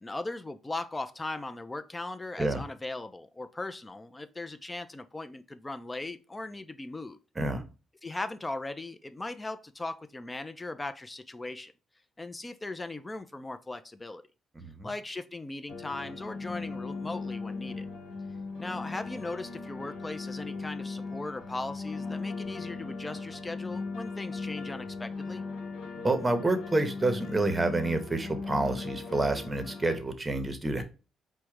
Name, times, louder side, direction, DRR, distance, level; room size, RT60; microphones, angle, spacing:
voice 1, 0.0-7.2 8.0-11.7 12.2-14.2 14.8-17.9 18.6-25.4, left 2 dB, 20° left, 0.3 m, -38 dB
voice 2, 14.5-14.9 26.0-30.8, right 2 dB, 20° right, 0.7 m, -28 dB
sound 1, 15.7-30.0, left 4 dB, 80° left, 1.0 m, -38 dB
4.5 x 2.1 x 4.7 m
cardioid pair, 90°, 0 cm